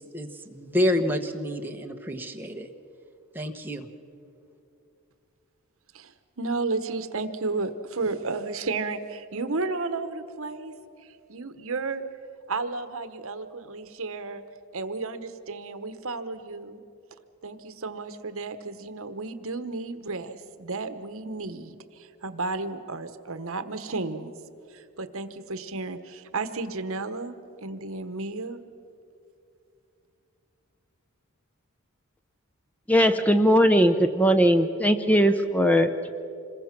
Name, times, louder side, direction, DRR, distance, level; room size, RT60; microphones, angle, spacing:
voice 1, 0.1-2.7 3.3-3.9, left 1 dB, 10° right, 3 dB, 1.2 m, -28 dB
voice 2, 5.9-10.7 11.0-12.0 12.5-14.4 14.7-16.8 17.4-24.3 24.7-28.6, right 3 dB, 65° right, 11 dB, 1.1 m, -33 dB
voice 3, 32.9-36.1, equal, 5° left, 8 dB, 0.6 m, -20 dB
26.5 x 21.5 x 5.9 m, 2.6 s
head